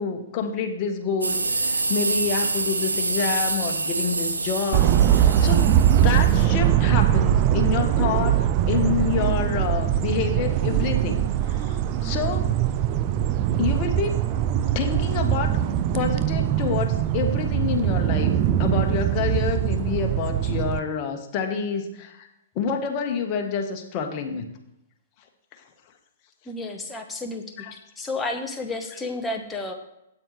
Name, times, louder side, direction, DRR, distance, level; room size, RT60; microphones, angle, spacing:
voice 1, 0.0-5.7 6.0-8.4 8.7-12.5 13.6-14.2 14.7-15.6 15.9-22.3 22.5-24.5 25.5-25.6 27.6-27.7, left 6 dB, 35° left, 4 dB, 1.5 m, -28 dB
sound 1, 1.2-6.4, right 3 dB, 75° right, 0.9 m, -27 dB
sound 2, 4.7-20.8, right 11 dB, 35° right, 0.5 m, -22 dB
voice 2, 26.5-27.4 28.0-29.7, left 2 dB, 10° left, 3 dB, 1.3 m, -31 dB
12.5 x 8.8 x 3.4 m, 0.85 s
figure-of-eight pair, 115°, 0 cm